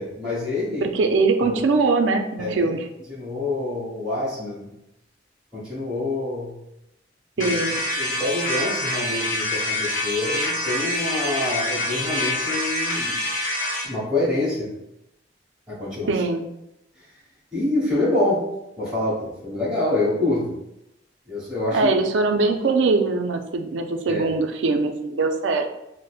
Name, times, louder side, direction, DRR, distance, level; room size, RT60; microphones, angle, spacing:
voice 1, 0.0-0.8 1.4-1.6 2.4-2.7 3.1-4.7 5.5-6.6 7.4-7.5 7.9-13.2 13.8-14.7 15.7-16.1 17.5-18.5 18.8-20.5 21.3-21.9 24.1-24.2, left 2 dB, 5° right, -10 dB, 1.3 m, -26 dB
voice 2, 0.8-2.9 7.4-7.7 16.1-16.4 21.7-25.7, right 3 dB, 75° right, 5 dB, 0.4 m, -22 dB
sound 1, 7.4-13.9, left 1 dB, 45° left, 0.9 m, -26 dB
5.0 x 2.1 x 2.3 m, 0.85 s
head